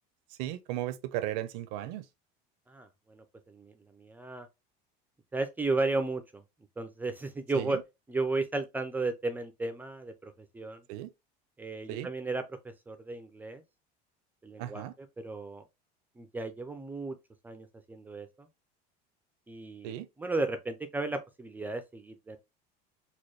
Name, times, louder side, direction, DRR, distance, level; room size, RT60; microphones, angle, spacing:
voice 1, 0.4-2.0 7.5-7.8 10.9-11.1 11.9-12.1 14.6-14.9 19.8-20.1, right 13 dB, 80° right, 0.6 m, -35 dB
voice 2, 2.7-4.5 5.3-6.4 6.8-7.8 8.1-10.8 11.6-12.4 12.9-13.6 14.4-14.8 15.2-15.6 16.2-17.2 17.4-18.5 19.5-22.4, right 3 dB, 10° right, 0.4 m, -34 dB
4.2 x 2.2 x 3.1 m
cardioid pair, 160°, 20 cm